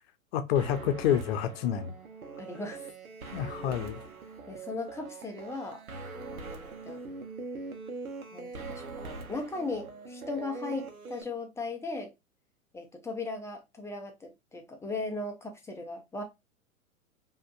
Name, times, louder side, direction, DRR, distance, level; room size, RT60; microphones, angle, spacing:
voice 1, 0.3-1.9 3.3-4.0, left 9 dB, 45° left, 0.8 m, -28 dB
sound 1, 0.6-11.2, right 4 dB, 80° right, 1.1 m, -42 dB
voice 2, 2.4-2.8 4.5-5.8 6.3-7.0 8.3-12.1 12.7-16.2, left 3 dB, 5° left, 0.6 m, -37 dB
5.1 x 2.9 x 2.4 m
figure-of-eight pair, 110°, 42 cm